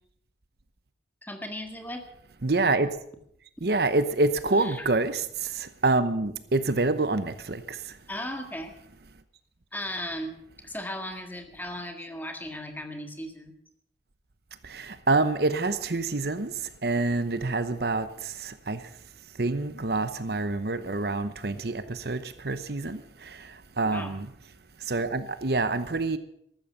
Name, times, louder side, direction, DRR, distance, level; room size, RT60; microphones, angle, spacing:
voice 1, 1.2-2.0 4.5-4.9 8.1-8.7 9.7-10.3 10.6-13.5 23.9-24.1, left 1 dB, 10° left, 1.8 m, -36 dB
voice 2, 2.4-2.9 3.6-7.8 14.6-16.5 16.8-18.8 19.4-24.3 24.8-26.2, right 3 dB, 60° right, 0.9 m, -27 dB
14.5 x 13.0 x 6.8 m
head